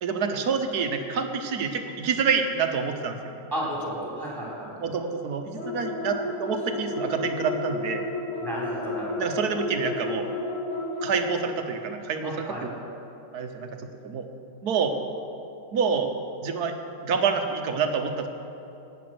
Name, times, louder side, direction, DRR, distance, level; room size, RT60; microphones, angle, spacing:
voice 1, 0.0-3.3 4.0-4.1 4.8-8.1 9.2-10.3 11.0-12.7 13.3-13.8 14.0-14.3 14.6-14.9 15.7-16.1 16.4-16.7 17.0-18.3, right 5 dB, 60° right, 6 dB, 1.5 m, -27 dB
voice 2, 3.5-4.7 8.4-9.2 12.2-12.6, equal, 10° right, -5 dB, 4.1 m, -33 dB
sound 1, 5.6-11.4, left 2 dB, 35° left, 3.6 m, -32 dB
16.0 x 10.0 x 6.1 m, 2.8 s
omnidirectional pair, 2.0 m